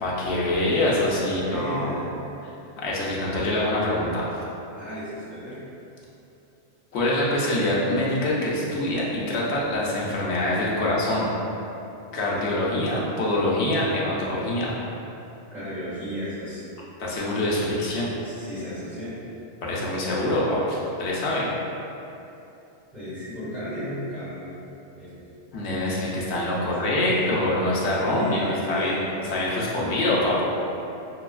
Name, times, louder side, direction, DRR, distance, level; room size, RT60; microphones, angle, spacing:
voice 1, 0.0-1.9 2.4-4.3 6.9-11.3 12.1-14.8 17.0-18.1 19.6-21.5 25.5-29.0 29.3-30.4, left 1 dB, 70° left, -5 dB, 1.0 m, -25 dB
voice 2, 1.2-2.0 4.7-5.6 15.5-16.7 18.2-19.1 22.9-24.5 25.0-25.3 26.6-27.3 28.1-29.1, left 1 dB, ahead, -15 dB, 1.1 m, -34 dB
5.6 x 2.3 x 2.3 m, 2.8 s
omnidirectional pair, 1.2 m